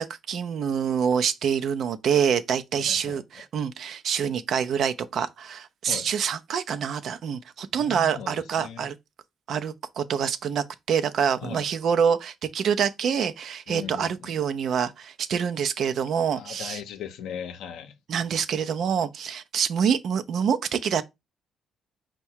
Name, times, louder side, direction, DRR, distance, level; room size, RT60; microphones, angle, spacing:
voice 1, 0.0-9.0 9.5-16.8 18.1-21.0, right 7 dB, 65° right, 0.4 m, -26 dB
voice 2, 2.8-3.2 5.9-6.1 7.8-8.9 11.4-11.7 13.7-14.3 16.4-17.9, left 7 dB, 85° left, 0.6 m, -38 dB
4.6 x 2.2 x 4.3 m
cardioid pair, 90°, 0 cm